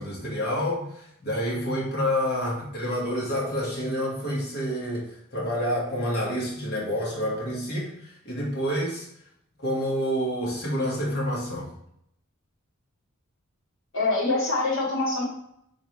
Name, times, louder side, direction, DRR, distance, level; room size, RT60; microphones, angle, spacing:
voice 1, 0.0-9.1 9.6-11.7, equal, 50° left, -4 dB, 1.6 m, -28 dB
voice 2, 13.9-15.2, left 2 dB, 65° left, -5 dB, 1.8 m, -24 dB
4.6 x 3.7 x 3.1 m, 0.74 s
head